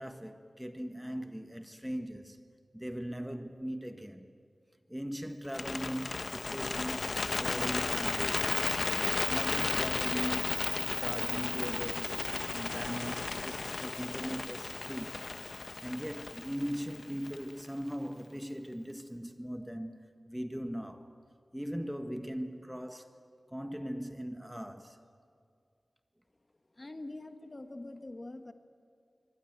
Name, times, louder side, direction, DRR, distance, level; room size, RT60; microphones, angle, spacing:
voice 1, 0.0-2.4 2.7-4.3 4.9-8.7 9.3-15.2 15.8-21.1 21.5-23.2 23.5-25.0, equal, 5° right, 1.4 m, -40 dB
Bird, 5.4-17.6, left 3 dB, 60° left, 0.8 m, -34 dB
voice 2, 26.7-28.5, left 2 dB, 35° left, 1.4 m, -44 dB
26.5 x 24.0 x 9.3 m
wide cardioid pair, 85°, 0 cm